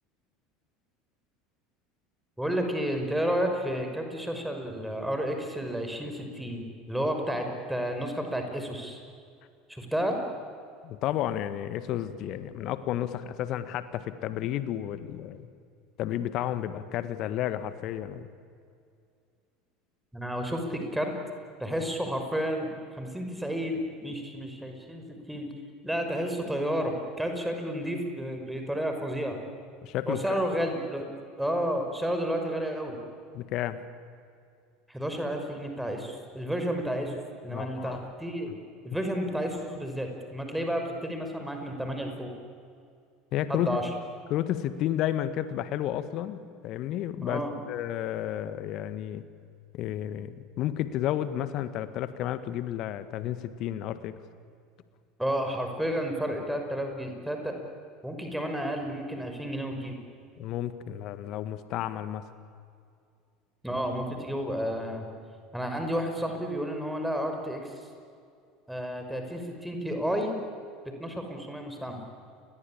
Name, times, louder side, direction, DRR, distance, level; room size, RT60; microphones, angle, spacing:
voice 1, 2.4-9.0 9.7-10.2 20.1-21.1 21.6-22.7 23.0-25.5 25.8-29.4 30.1-31.1 31.4-33.0 34.9-38.5 38.8-42.3 43.5-43.9 47.2-47.5 55.2-57.5 58.0-60.0 63.6-65.1 65.5-67.7 68.7-70.4 70.8-72.1, equal, 5° right, 4 dB, 5.8 m, -31 dB
voice 2, 10.8-15.5 16.0-18.3 29.8-30.3 33.3-33.8 37.5-38.0 43.3-43.7 44.3-47.4 47.7-49.2 49.7-54.1 60.4-62.2, left 12 dB, 50° left, 12 dB, 1.8 m, -32 dB
30.0 x 22.0 x 8.9 m, 2.3 s
figure-of-eight pair, 70°, 0 cm